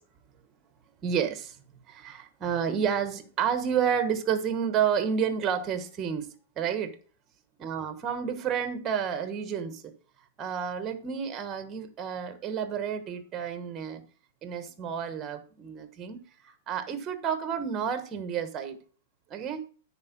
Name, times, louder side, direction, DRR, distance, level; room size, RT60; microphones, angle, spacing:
voice 1, 1.0-6.3 6.6-7.0 7.6-9.8 10.4-14.0 14.4-18.8 19.3-19.6, right 7 dB, 20° right, 10 dB, 1.2 m, -30 dB
9.7 x 4.4 x 6.0 m, 0.40 s
supercardioid pair, 160°, 0 cm